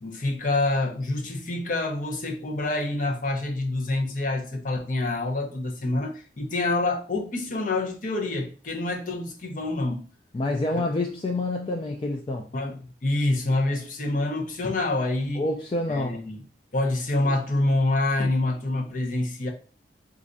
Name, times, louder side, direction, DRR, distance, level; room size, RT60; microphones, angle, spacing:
voice 1, 0.0-10.1 12.5-15.4 15.9-16.4 16.7-19.5, left 2 dB, 50° left, 0.7 m, -27 dB
voice 2, 10.3-12.5 15.4-16.2, left 2 dB, 30° left, 0.3 m, -27 dB
4.1 x 2.5 x 2.5 m
head